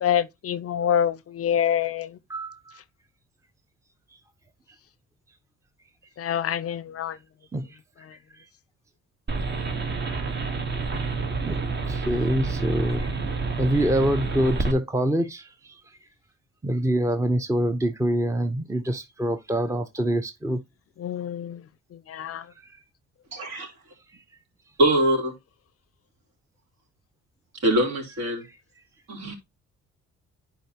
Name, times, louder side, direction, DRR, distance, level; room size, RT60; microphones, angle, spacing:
voice 1, 0.0-2.2 6.2-7.2 8.0-8.2 21.0-22.5, left 9 dB, 50° left, 0.6 m, -27 dB
voice 2, 2.3-2.8 7.5-7.8 8.3-8.5 10.0-10.2 11.1-11.6 11.9-13.2 13.6-16.0 16.6-20.6 22.6-22.8 24.1-24.2, right 1 dB, 10° right, 0.8 m, -26 dB
sound 1, 9.3-14.7, right 4 dB, 35° right, 1.4 m, -28 dB
voice 3, 23.3-23.7 24.8-25.3 27.6-28.4 29.1-29.4, right 1 dB, 65° right, 4.0 m, -23 dB
10.5 x 4.8 x 2.8 m
cardioid pair, 90°, 30 cm